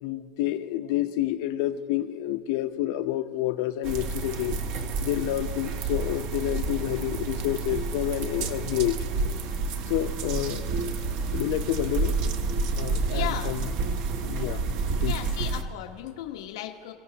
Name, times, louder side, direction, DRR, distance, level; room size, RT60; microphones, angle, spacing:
voice 1, 0.0-4.5 5.0-8.9 9.9-10.6 11.3-12.3 12.8-13.7 14.2-14.6 15.0-15.2, left 14 dB, 55° left, 9 dB, 0.7 m, -29 dB
sound 1, 3.8-15.6, right 3 dB, 45° right, 0.9 m, -29 dB
voice 2, 13.1-13.5 15.1-16.9, left 13 dB, 85° left, 3 dB, 1.1 m, -35 dB
29.0 x 17.0 x 2.9 m, 2.5 s
supercardioid pair, 175°, 2 cm